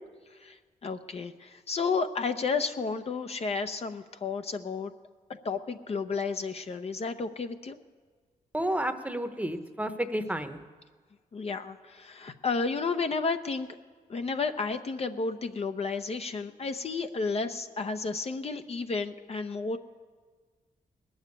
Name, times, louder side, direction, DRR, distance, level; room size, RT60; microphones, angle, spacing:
voice 1, 0.3-4.9 5.4-7.8 11.3-13.7 14.1-19.8, left 4 dB, 45° left, 7 dB, 0.7 m, -32 dB
voice 2, 8.5-10.6, right 1 dB, 10° right, 8 dB, 0.9 m, -31 dB
19.5 x 7.2 x 9.6 m, 1.5 s
cardioid pair, 80°, 15 cm